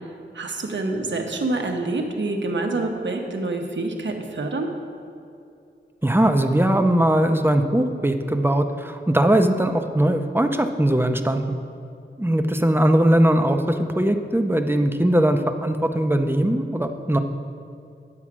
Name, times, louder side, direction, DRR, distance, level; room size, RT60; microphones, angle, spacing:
voice 1, 0.3-4.7, right 2 dB, 75° right, 2 dB, 1.1 m, -26 dB
voice 2, 6.0-11.6 12.2-17.2, right 1 dB, 10° right, 6 dB, 0.6 m, -20 dB
9.9 x 4.9 x 7.4 m, 2.6 s
wide cardioid pair, 70°, 19 cm